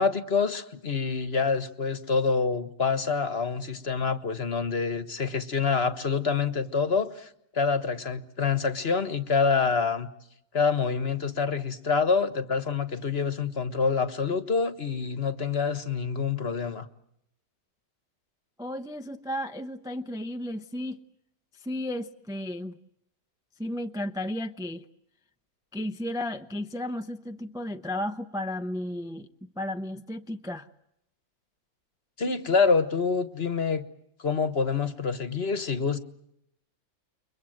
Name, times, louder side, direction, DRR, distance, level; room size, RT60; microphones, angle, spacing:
voice 1, 0.0-10.1 10.5-16.9 32.2-33.8 34.2-36.0, left 5 dB, 45° left, 11 dB, 1.5 m, -26 dB
voice 2, 18.6-21.0 21.6-22.7 23.6-24.8 25.7-30.7, left 1 dB, 5° right, 7 dB, 0.6 m, -34 dB
30.0 x 23.0 x 7.9 m, 0.79 s
omnidirectional pair, 1.6 m